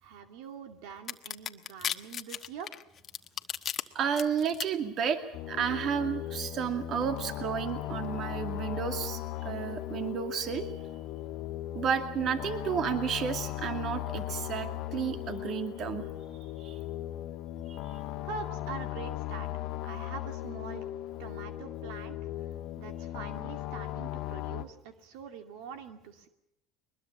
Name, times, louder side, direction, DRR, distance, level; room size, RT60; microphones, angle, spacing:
voice 1, 0.0-2.7 18.2-19.5 19.8-20.8 21.2-22.2 22.8-26.3, right 6 dB, 75° right, 7 dB, 2.4 m, -44 dB
sound 1, 1.1-3.8 4.2-4.6, left 9 dB, 40° left, 1.2 m, -34 dB
voice 2, 3.9-5.2 5.5-10.8 11.7-16.0 16.6-16.8 17.7-17.9, right 7 dB, 45° right, 7 dB, 2.3 m, -32 dB
sound 2, 5.3-24.7, left 14 dB, 60° left, 1.4 m, -37 dB
22.0 x 21.0 x 7.3 m, 0.83 s
supercardioid pair, 105°, 0 cm